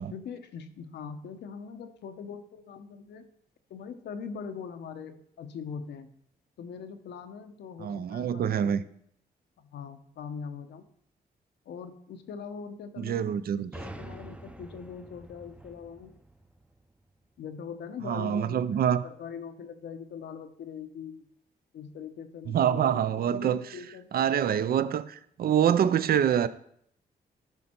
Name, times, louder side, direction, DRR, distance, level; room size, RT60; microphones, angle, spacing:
voice 1, 0.1-3.3 3.7-6.1 6.6-8.8 9.6-10.9 11.7-13.4 13.7-16.1 17.4-21.3 21.7-24.3, left 6 dB, 90° left, 0.8 m, -42 dB
voice 2, 7.8-8.8 13.0-13.7 18.0-19.0 22.5-23.7 24.1-26.5, right 9 dB, 60° right, 0.5 m, -26 dB
sound 1, 13.7-17.4, right 1 dB, 5° right, 0.5 m, -46 dB
10.5 x 5.2 x 4.4 m
cardioid pair, 90°, 17 cm